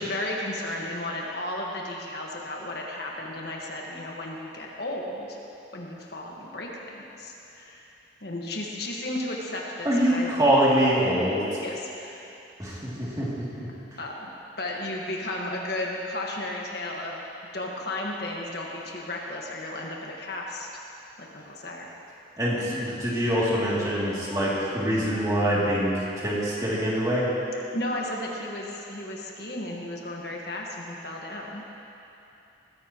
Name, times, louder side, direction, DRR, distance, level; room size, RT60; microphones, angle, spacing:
voice 1, 0.0-5.4 5.7-7.9 8.2-10.3 11.6-12.3 13.7-14.3 14.6-17.2 17.5-20.7 21.2-21.9 27.7-31.7, left 1 dB, 55° left, -2 dB, 1.6 m, -34 dB
voice 2, 9.8-11.4 12.6-13.3 13.5-13.7 22.4-25.9 26.2-27.2, equal, 20° right, -7 dB, 2.7 m, -24 dB
21.0 x 15.0 x 3.0 m, 2.9 s
head